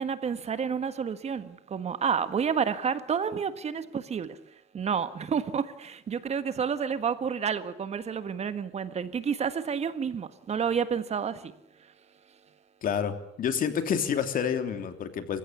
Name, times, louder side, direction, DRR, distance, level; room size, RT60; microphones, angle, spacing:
voice 1, 0.0-4.4 4.7-11.5, right 7 dB, 40° right, 1.6 m, -30 dB
voice 2, 12.8-15.4, left 7 dB, 55° left, 3.0 m, -28 dB
27.5 x 16.0 x 9.6 m
cardioid pair, 110°, 17 cm